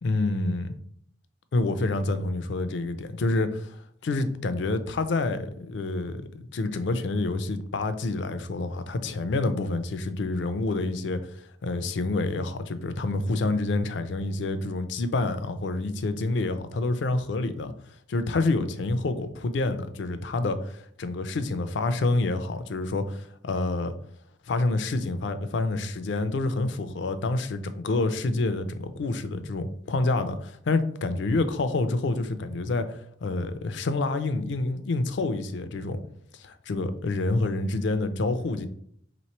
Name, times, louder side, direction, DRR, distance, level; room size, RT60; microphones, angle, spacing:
voice 1, 0.0-0.7 1.5-17.7 18.1-23.9 24.5-36.0 36.3-38.7, left 2 dB, 70° left, 0.4 m, -28 dB
3.2 x 3.0 x 4.3 m
head